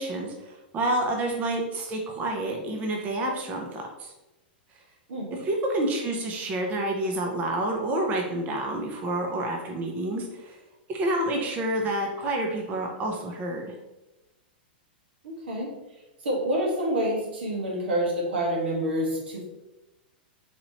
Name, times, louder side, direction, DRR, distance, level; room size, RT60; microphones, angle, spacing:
voice 1, 0.0-4.1 5.3-10.6 10.9-13.7, right 1 dB, 30° right, 1 dB, 0.6 m, -29 dB
voice 2, 15.2-15.7 16.2-19.4, right 1 dB, 85° right, -2 dB, 1.3 m, -27 dB
4.1 x 3.0 x 2.8 m, 1.0 s
hypercardioid pair, 130°, 6 cm